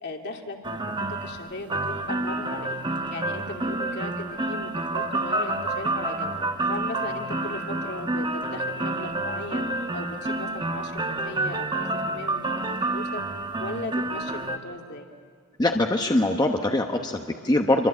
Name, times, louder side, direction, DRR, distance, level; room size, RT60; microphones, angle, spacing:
voice 1, 0.0-2.8 3.1-6.3 6.7-13.2 13.6-15.1, left 2 dB, 55° left, 2 dB, 2.6 m, -37 dB
sound 1, 0.6-14.6, right 2 dB, 20° right, 1.2 m, -29 dB
voice 2, 15.6-17.9, left 1 dB, 20° left, 3 dB, 1.1 m, -23 dB
26.0 x 24.0 x 8.6 m, 2.2 s
head